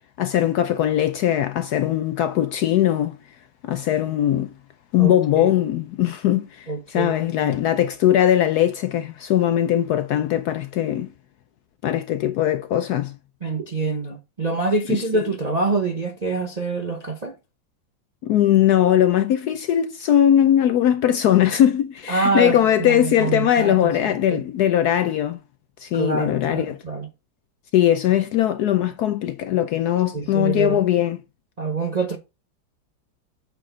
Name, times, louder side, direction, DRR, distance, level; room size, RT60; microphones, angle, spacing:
voice 1, 0.2-3.2 3.6-4.5 4.9-11.1 11.8-13.2 18.2-25.4 25.8-26.8 27.7-31.2, left 11 dB, 70° left, 0.9 m, -20 dB
voice 2, 5.0-5.5 6.7-7.1 7.4-7.5 13.4-17.4 22.1-23.8 24.0-24.4 25.9-27.1 30.1-30.8 31.6-32.2, right 3 dB, 45° right, 0.5 m, -25 dB
8.5 x 4.6 x 3.8 m
omnidirectional pair, 2.1 m